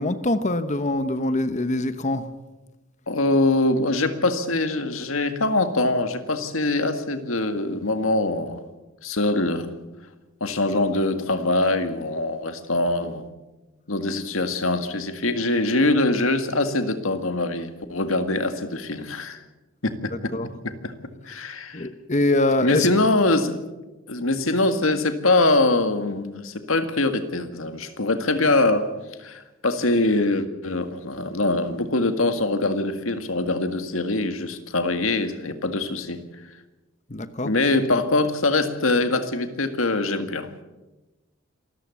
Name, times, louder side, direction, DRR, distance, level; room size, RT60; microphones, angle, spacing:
voice 1, 0.0-2.2 20.3-20.5 21.7-22.9 37.1-37.5, left 1 dB, 35° left, 11 dB, 1.1 m, -23 dB
voice 2, 3.1-8.6 9.0-9.7 10.4-13.3 13.9-19.4 19.8-20.3 20.6-20.9 21.3-21.9 22.6-23.6 24.1-28.9 29.2-36.2 37.4-40.5, left 2 dB, 85° left, 8 dB, 1.9 m, -23 dB
27.0 x 14.0 x 7.2 m, 1.1 s
head